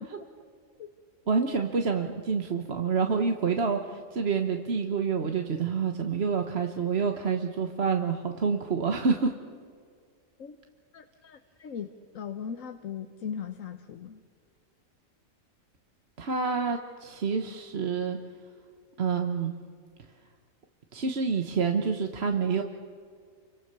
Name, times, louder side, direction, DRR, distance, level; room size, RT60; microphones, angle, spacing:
voice 1, 1.3-9.3 16.2-18.2 19.0-19.6 20.9-22.6, right 5 dB, 50° right, 4 dB, 1.4 m, -28 dB
voice 2, 10.9-14.2, left 7 dB, 70° left, 7 dB, 1.4 m, -39 dB
29.0 x 25.0 x 6.8 m, 2.1 s
omnidirectional pair, 1.4 m